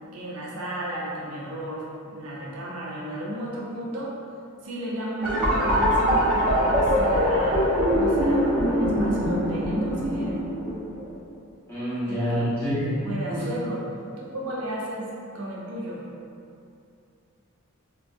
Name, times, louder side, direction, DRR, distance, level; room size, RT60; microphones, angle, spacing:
voice 1, 0.0-4.2 4.6-7.7 7.9-10.3 12.1-12.5 12.8-13.8 14.2-15.1 15.3-16.0, right 1 dB, 85° right, -5 dB, 0.6 m, -34 dB
sound 1, 5.2-11.1, equal, 10° right, 1.1 m, -23 dB
voice 2, 11.7-12.9 13.3-13.4, equal, 10° left, -13 dB, 1.0 m, -27 dB
2.9 x 2.6 x 2.6 m, 2.6 s
head